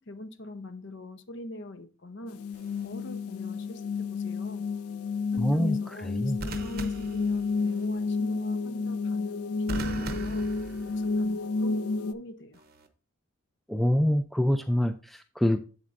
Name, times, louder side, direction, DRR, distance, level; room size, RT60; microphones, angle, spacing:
voice 1, 0.0-2.4 2.8-4.7 5.3-10.5 10.8-12.6, left 1 dB, 55° left, 0.7 m, -43 dB
sound 1, 2.3-12.1, left 4 dB, 90° left, 0.4 m, -31 dB
sound 2, 2.5-2.9 6.4-7.9 9.7-11.3 12.5-12.9, right 2 dB, 45° right, 0.8 m, -39 dB
voice 2, 5.4-5.8 6.0-6.4 13.7-15.6, left 1 dB, ahead, 0.3 m, -25 dB
8.0 x 7.4 x 2.5 m
head